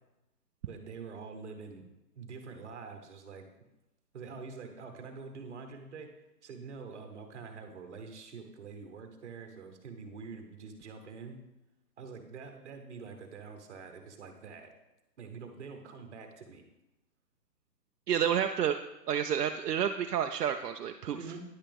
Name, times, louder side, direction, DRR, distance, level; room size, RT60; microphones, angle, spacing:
voice 1, 0.7-1.9 2.1-3.4 4.1-6.1 6.4-11.4 12.0-14.7 15.2-16.6 21.1-21.4, right 5 dB, 45° right, 5 dB, 1.2 m, -45 dB
voice 2, 18.1-18.8 19.1-21.2, right 9 dB, 70° right, 6 dB, 0.6 m, -29 dB
10.0 x 5.6 x 3.5 m, 0.95 s
hypercardioid pair, 165°, 49 cm